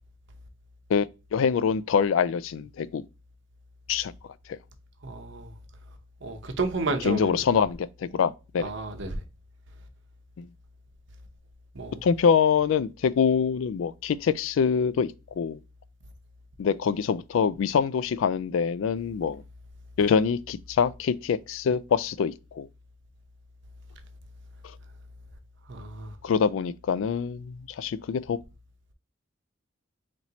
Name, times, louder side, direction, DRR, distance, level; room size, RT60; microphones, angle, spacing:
voice 1, 1.3-3.0 3.9-4.1 7.0-8.7 10.4-10.5 12.0-15.6 16.6-19.4 20.0-22.7 26.2-28.4, left 6 dB, 75° left, 0.3 m, -25 dB
voice 2, 5.0-5.5 6.2-7.4 8.6-9.1 11.7-12.0 25.7-26.1, right 3 dB, 65° right, 0.8 m, -31 dB
4.2 x 3.1 x 2.8 m
head